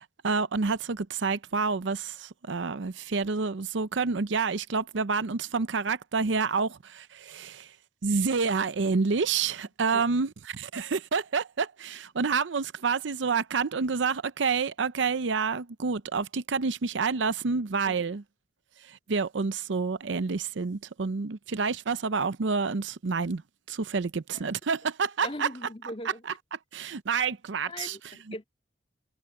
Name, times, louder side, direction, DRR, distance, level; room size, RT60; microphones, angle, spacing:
voice 1, 0.0-7.7 8.0-18.2 18.8-23.4 23.7-25.7 26.7-28.0, right 5 dB, 80° right, 0.6 m, -28 dB
voice 2, 25.2-26.2 27.6-28.4, left 1 dB, 30° left, 2.4 m, -40 dB
head